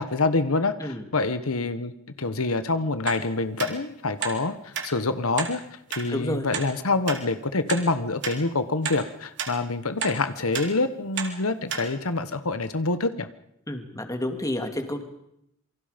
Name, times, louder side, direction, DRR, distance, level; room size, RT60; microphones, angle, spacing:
voice 1, 0.0-1.9 2.2-13.3, left 3 dB, 80° left, 11 dB, 1.3 m, -26 dB
sound 1, 3.1-3.2 3.6-3.7 4.2-4.4 4.7-4.9 5.4-5.5 5.9-6.0 6.5-6.7 7.1-7.2 7.7-7.8 8.2-8.4 8.8-9.0 9.4-9.5 10.0-10.2 10.5-10.7 11.2-11.3 11.7-11.8 12.3-12.4, right 6 dB, 60° right, 3.7 m, -31 dB
voice 2, 6.1-6.5 13.7-15.0, left 1 dB, 15° left, 6 dB, 2.7 m, -30 dB
27.5 x 24.0 x 5.3 m, 0.77 s
head